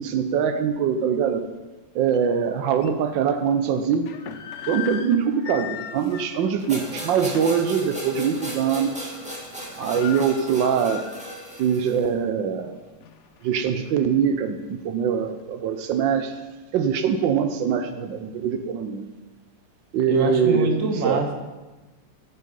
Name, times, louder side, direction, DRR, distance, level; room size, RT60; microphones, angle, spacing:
voice 1, 0.0-1.5 1.9-4.1 4.7-9.1 9.8-11.0 11.6-12.8 13.4-16.3 16.7-19.1 19.9-20.8 21.0-21.2, right 7 dB, 85° right, 9 dB, 1.4 m, -23 dB
sound 1, 2.1-2.2 2.8-2.9 3.8-7.7 8.1-8.3 8.6-9.0 9.3-9.4 9.6-11.5 11.9-12.0 12.7-14.0, left 9 dB, 65° left, 0.7 m, -38 dB
sound 2, 6.7-12.0, equal, 5° right, 2.1 m, -36 dB
voice 2, 20.1-21.3, right 3 dB, 45° right, 3 dB, 1.6 m, -25 dB
15.0 x 6.5 x 5.3 m, 1.2 s
omnidirectional pair, 2.0 m